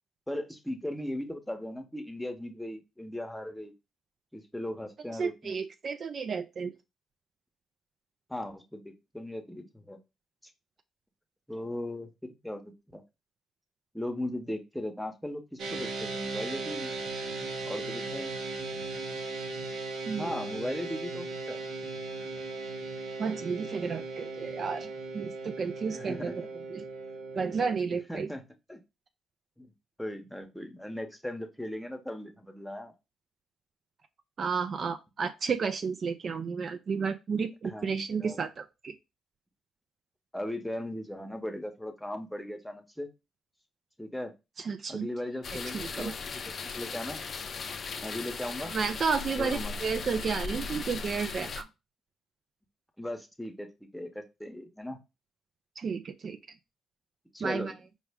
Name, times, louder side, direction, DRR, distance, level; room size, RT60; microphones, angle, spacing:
voice 1, 0.3-3.7 4.3-5.6 8.3-10.0 11.5-13.0 13.9-16.9 17.6-18.4 20.2-21.6 25.9-26.5 28.1-28.4 28.7-28.8 29.6-29.7 30.0-32.9 37.6-38.4 40.3-43.1 44.0-44.3 44.9-46.1 46.4-47.2 48.0-48.7 49.4-49.7 53.0-55.0 57.3-57.7, left 1 dB, 5° left, 5 dB, 0.9 m, -38 dB
voice 2, 5.1-6.7 20.1-20.4 23.2-26.4 26.7-26.8 27.3-28.3 34.4-38.9 44.6-45.1 45.7-46.1 48.6-51.7 55.8-56.4 57.4-57.7, right 5 dB, 55° right, 8 dB, 0.4 m, -32 dB
sound 1, 15.6-27.7, right 3 dB, 75° right, 0.8 m, -37 dB
sound 2, 45.4-51.6, left 5 dB, 50° left, 0.4 m, -37 dB
4.8 x 2.1 x 3.5 m, 0.25 s
supercardioid pair, 55°, 0 cm